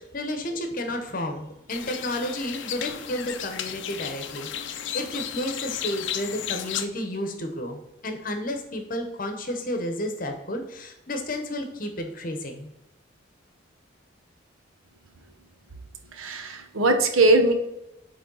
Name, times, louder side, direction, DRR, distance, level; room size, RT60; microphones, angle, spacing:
voice 1, 0.0-12.7, left 1 dB, 40° left, 5 dB, 0.9 m, -32 dB
sound 1, 1.7-6.9, left 10 dB, 60° left, 0.5 m, -34 dB
voice 2, 16.1-17.5, right 2 dB, 85° right, 6 dB, 0.9 m, -20 dB
8.4 x 3.4 x 3.9 m, 0.90 s
head